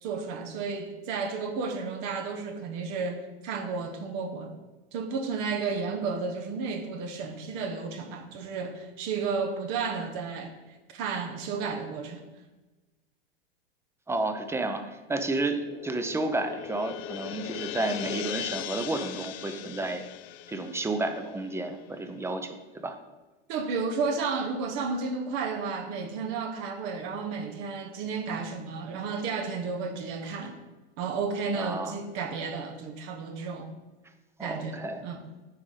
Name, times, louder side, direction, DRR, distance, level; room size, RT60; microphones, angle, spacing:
voice 1, 0.0-4.6 4.9-10.5 10.9-12.2 23.5-30.6 31.0-33.7 34.4-35.2, right 5 dB, 50° right, 5 dB, 1.0 m, -32 dB
voice 2, 14.1-20.0 20.5-23.0 31.5-32.0 34.4-35.1, right 2 dB, 10° right, 8 dB, 0.7 m, -31 dB
sound 1, 15.5-22.0, left 13 dB, 40° left, 0.5 m, -39 dB
9.7 x 4.8 x 4.0 m, 1.2 s
hypercardioid pair, 100°, 30 cm